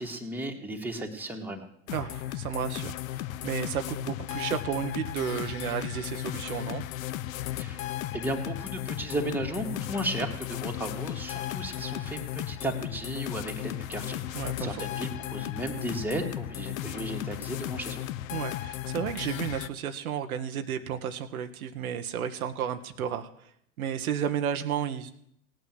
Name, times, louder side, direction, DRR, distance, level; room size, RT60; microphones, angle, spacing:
voice 1, 0.0-1.7 7.6-18.1, right 1 dB, 5° right, 1 dB, 2.5 m, -35 dB
sound 1, 1.9-19.7, left 13 dB, 65° left, 0.9 m, -35 dB
voice 2, 1.9-3.0 3.4-6.8 14.3-14.8 18.3-23.3 23.8-25.1, right 9 dB, 80° right, 7 dB, 1.4 m, -32 dB
17.5 x 8.9 x 7.8 m, 0.70 s
hypercardioid pair, 100°, 43 cm